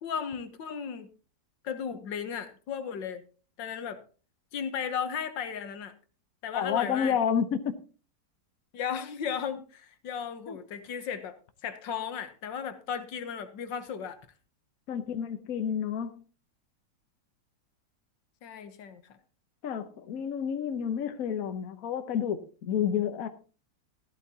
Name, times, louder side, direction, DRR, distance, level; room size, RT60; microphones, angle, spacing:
voice 1, 0.0-1.1 1.6-3.2 3.6-4.0 4.5-5.9 6.4-7.2 8.7-11.4 11.6-14.2 18.4-19.2, left 7 dB, 80° left, 1.7 m, -35 dB
voice 2, 6.5-7.8 10.5-10.6 14.9-16.2 19.6-23.3, left 8 dB, 55° left, 1.2 m, -30 dB
14.0 x 12.0 x 2.8 m
omnidirectional pair, 2.0 m